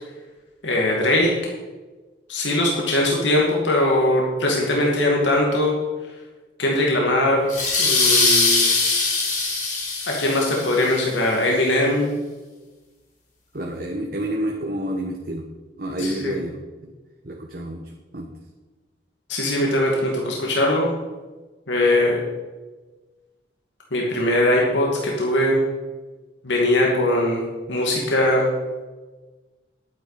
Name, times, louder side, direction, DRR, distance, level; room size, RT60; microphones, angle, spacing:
voice 1, 0.6-1.3 2.3-5.7 6.6-7.5 7.8-8.7 10.1-12.1 16.0-16.3 19.3-20.9 21.7-22.2 23.9-25.6 26.4-28.5, left 1 dB, 80° left, -2 dB, 2.3 m, -21 dB
sound 1, 7.5-10.9, left 3 dB, 45° left, 3.1 m, -21 dB
voice 2, 13.5-15.5 15.8-16.6 16.8-16.9 17.2-18.3, right 1 dB, 50° right, 0 dB, 1.2 m, -29 dB
11.5 x 9.6 x 5.1 m, 1.2 s
head